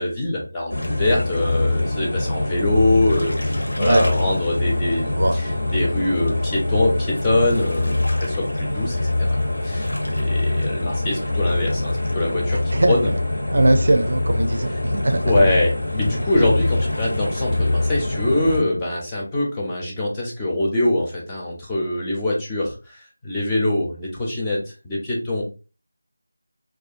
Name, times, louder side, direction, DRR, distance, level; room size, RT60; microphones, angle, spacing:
voice 1, 0.0-9.4 9.6-12.6 12.9-13.1 14.6-14.8 15.2-25.4, left 1 dB, 10° left, -4 dB, 0.4 m, -23 dB
sound 1, 0.7-18.6, left 2 dB, 85° left, 0.8 m, -24 dB
voice 2, 13.5-14.7 15.0-15.2, right 1 dB, 50° right, 6 dB, 0.4 m, -19 dB
2.3 x 2.2 x 2.6 m, 0.32 s
figure-of-eight pair, 175°, 0 cm